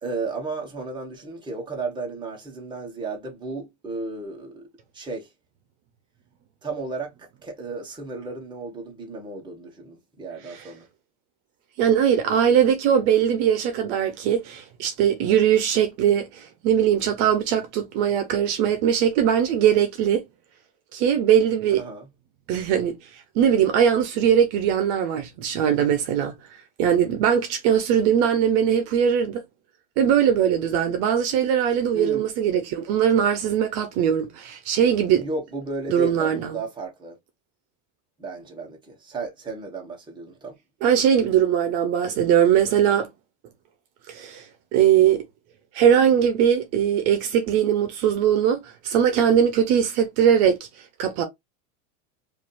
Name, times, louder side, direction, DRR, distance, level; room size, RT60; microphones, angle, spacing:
voice 1, 0.0-4.7 4.9-5.3 6.6-7.1 7.4-10.9 21.8-22.1 31.9-32.3 35.2-37.2 38.2-40.5, right 3 dB, 10° right, 1.4 m, -34 dB
voice 2, 11.8-20.2 20.9-21.8 22.5-23.0 23.3-26.3 26.8-29.4 30.0-35.2 35.9-36.6 40.8-43.1 44.1-44.5 44.7-45.2 45.7-50.7 51.0-51.2, right 9 dB, 55° right, 1.0 m, -20 dB
4.8 x 2.8 x 2.5 m
supercardioid pair, 155°, 42 cm